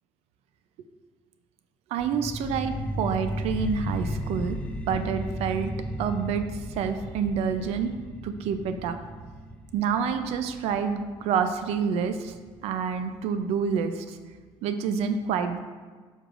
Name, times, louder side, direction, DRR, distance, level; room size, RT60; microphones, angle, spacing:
voice 1, 1.9-4.6 4.9-5.7 6.0-7.9 8.2-9.0 9.7-12.3 12.6-14.2 14.6-15.6, right 6 dB, 70° right, 8 dB, 0.5 m, -28 dB
sound 1, 2.0-13.0, equal, 10° left, 0.6 m, -35 dB
7.7 x 6.4 x 2.5 m, 1.5 s
cardioid pair, 120°, 11 cm